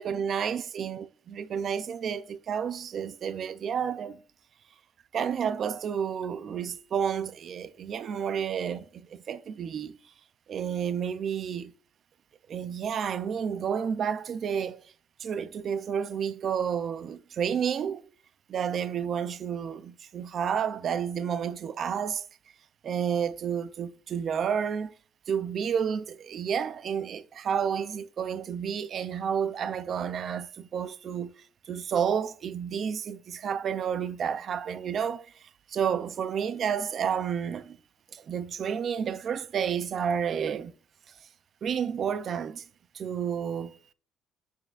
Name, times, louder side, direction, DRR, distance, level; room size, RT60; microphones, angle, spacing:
voice 1, 0.0-4.2 5.1-9.9 10.5-11.7 12.5-14.8 15.2-18.1 18.5-22.2 22.8-24.9 25.3-31.3 31.7-35.3 35.7-37.8 38.1-40.7 41.6-42.6 42.9-43.8, right 7 dB, 40° right, 0.4 m, -30 dB
8.8 x 6.3 x 2.4 m
cardioid pair, 175°, 0 cm